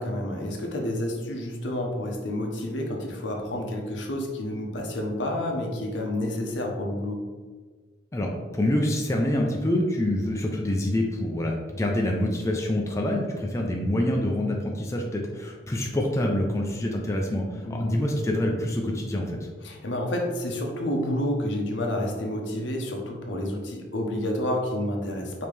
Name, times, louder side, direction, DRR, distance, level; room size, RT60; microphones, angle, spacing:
voice 1, 0.0-7.2 17.6-18.0 19.6-25.5, left 1 dB, 75° left, 1 dB, 0.8 m, -29 dB
voice 2, 8.1-19.5, left 1 dB, 15° left, 0 dB, 0.4 m, -26 dB
5.2 x 2.9 x 3.2 m, 1.4 s
head